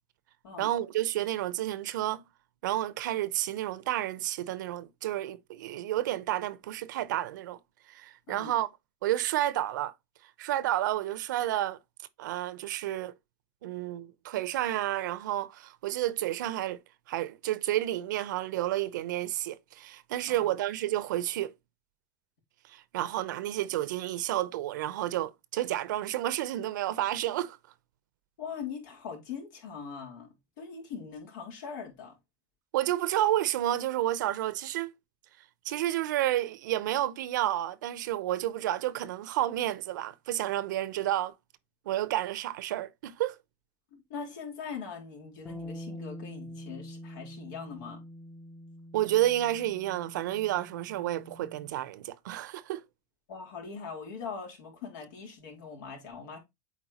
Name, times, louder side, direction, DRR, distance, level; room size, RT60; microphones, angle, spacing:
voice 1, 0.6-2.2 2.6-7.6 7.9-8.7 9.0-9.9 10.4-11.8 12.2-13.1 13.6-16.8 17.1-21.5 22.7-27.6 32.7-34.9 35.6-41.3 41.9-43.3 48.9-52.8, right 13 dB, 85° right, 0.7 m, -30 dB
voice 2, 28.4-32.1 43.9-48.0 53.3-56.4, left 6 dB, 80° left, 3.6 m, -41 dB
Bass guitar, 45.5-51.7, equal, 5° left, 0.7 m, -45 dB
8.2 x 4.4 x 2.9 m
supercardioid pair, 130°, 10 cm